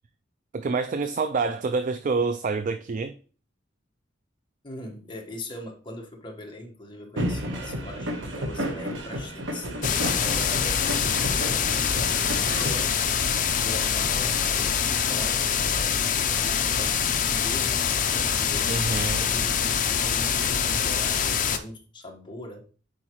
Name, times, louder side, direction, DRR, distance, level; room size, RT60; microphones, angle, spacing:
voice 1, 0.5-3.1 18.7-19.3, right 4 dB, 45° right, 0.4 m, -27 dB
voice 2, 4.6-17.8 18.1-22.6, left 1 dB, 25° left, 1.3 m, -41 dB
sound 1, 7.2-12.8, equal, 75° right, 1.1 m, -32 dB
sound 2, 9.8-21.6, left 7 dB, 45° left, 0.6 m, -25 dB
8.3 x 4.9 x 3.0 m
head